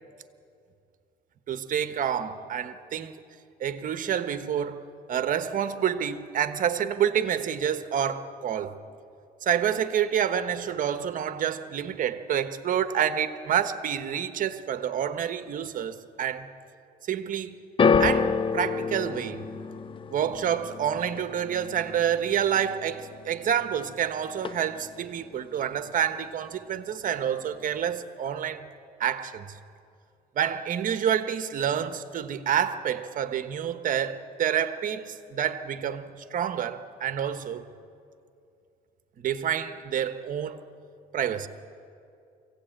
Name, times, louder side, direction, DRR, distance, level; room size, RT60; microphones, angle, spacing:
voice 1, 1.5-3.1 3.6-4.8 5.1-8.8 9.4-16.5 17.0-17.6 18.0-19.4 20.1-28.7 29.0-29.6 30.3-37.7 39.2-40.6 41.1-41.5, right 9 dB, 50° right, 1.2 m, -28 dB
sound 1, 17.8-24.1 24.3-25.0 25.7-25.8, left 5 dB, 30° left, 0.7 m, -29 dB
24.0 x 17.0 x 8.9 m
cardioid pair, 110°, 17 cm